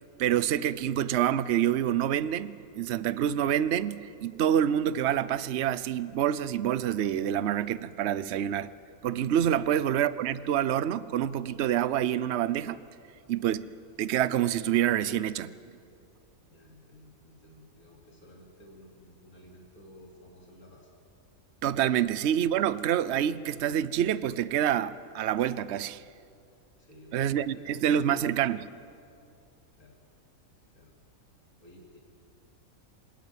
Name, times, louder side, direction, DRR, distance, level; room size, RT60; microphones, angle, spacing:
voice 1, 0.2-8.7 9.0-12.8 13.3-13.7 14.0-15.6 21.6-26.0 27.1-28.7, right 10 dB, 55° right, 0.9 m, -27 dB
voice 2, 16.5-20.9 26.8-28.0 29.8-29.9 30.7-30.9 31.6-32.0, left 1 dB, 85° left, 3.1 m, -54 dB
27.0 x 17.0 x 9.4 m
omnidirectional pair, 1.5 m